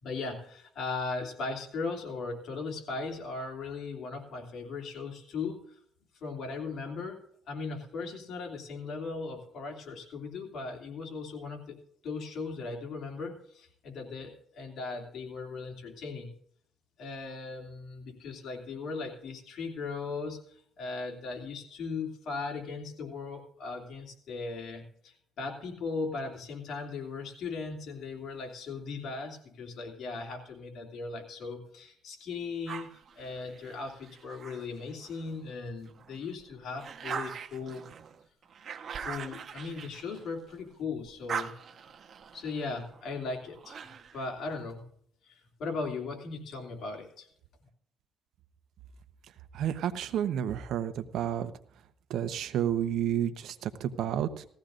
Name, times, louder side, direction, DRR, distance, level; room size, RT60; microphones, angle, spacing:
voice 1, 0.0-5.8 6.1-7.2 7.5-11.8 12.0-16.3 17.0-37.9 39.0-41.5 42.3-43.8 44.1-44.8 45.3-47.3, left 4 dB, 65° left, 2 dB, 2.8 m, -38 dB
sound 1, 32.7-35.4 35.9-40.7 41.0-44.3, right 7 dB, 50° right, 1.1 m, -42 dB
voice 2, 49.5-51.5 52.1-54.4, right 10 dB, 75° right, 9 dB, 0.9 m, -30 dB
18.5 x 14.5 x 2.6 m, 0.63 s
cardioid pair, 95°, 0 cm